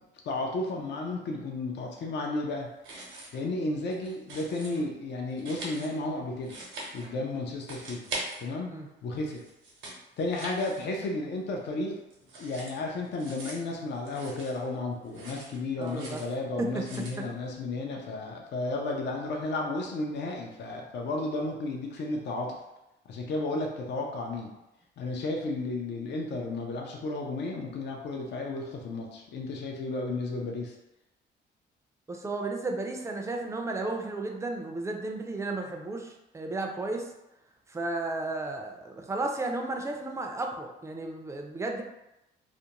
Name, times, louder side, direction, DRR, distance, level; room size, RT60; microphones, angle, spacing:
voice 1, 0.3-2.7 3.3-6.5 6.9-8.0 8.4-8.7 9.0-9.4 10.2-12.0 12.4-22.6 23.1-24.5 25.0-30.8, left 2 dB, 60° left, 0 dB, 0.5 m, -33 dB
sound 1, 2.7-3.5 3.8-4.8 5.3-7.3 7.6-8.8 9.2-11.3 11.6-14.7 15.0-16.3 16.7-17.2, right 2 dB, 80° right, 0.8 m, -43 dB
voice 2, 15.8-16.2 16.6-16.8 23.5-23.6 32.1-37.1 37.7-41.8, right 2 dB, 15° right, 2 dB, 0.4 m, -33 dB
2.5 x 2.1 x 2.9 m, 0.92 s
cardioid pair, 90°, 20 cm